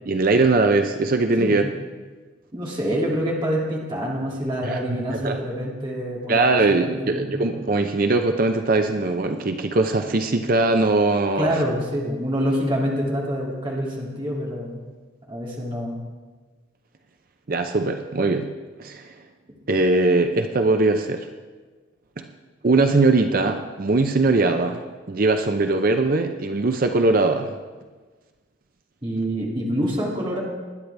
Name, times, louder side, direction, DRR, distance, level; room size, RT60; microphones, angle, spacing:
voice 1, 0.1-1.6 4.6-4.8 5.1-5.4 6.3-11.6 17.5-18.5 18.8-19.1 19.7-21.3 22.2-22.3 22.6-27.5, right 3 dB, 45° right, 6 dB, 0.6 m, -21 dB
voice 2, 1.4-1.7 2.5-7.3 11.4-14.8 15.3-16.0 29.0-30.4, equal, 25° right, -3 dB, 2.4 m, -26 dB
20.0 x 10.0 x 3.4 m, 1.4 s
head